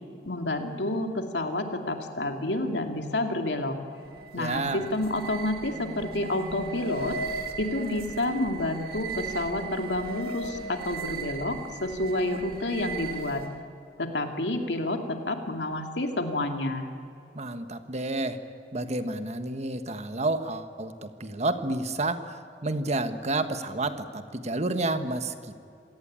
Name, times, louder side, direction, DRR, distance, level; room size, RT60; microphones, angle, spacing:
voice 1, 0.3-3.8 4.3-7.2 7.6-13.4 14.0-16.9, left 1 dB, 90° left, 4 dB, 2.5 m, -29 dB
sound 1, 3.9-13.7, right 3 dB, 60° right, 1.8 m, -37 dB
voice 2, 4.4-4.9 17.3-18.4 18.7-25.6, right 2 dB, 40° right, 9 dB, 1.4 m, -30 dB
27.0 x 17.5 x 8.8 m, 2.7 s
head